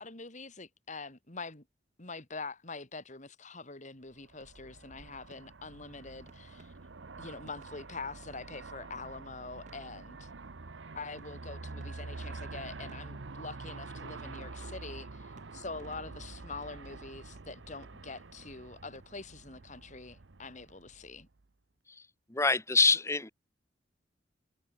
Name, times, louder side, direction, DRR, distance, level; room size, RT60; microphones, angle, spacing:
voice 1, 0.0-1.6 2.0-6.7 7.2-10.3 10.9-21.3, left 3 dB, 40° left, 3.0 m, -44 dB
Aircraft, 4.2-21.5, right 3 dB, 80° right, 1.0 m, -47 dB
sound 1, 4.4-5.0 5.3-9.1 9.6-10.4 10.8-19.1, right 2 dB, 40° right, 6.6 m, -66 dB
voice 2, 22.3-23.3, left 3 dB, 15° left, 1.2 m, -25 dB
head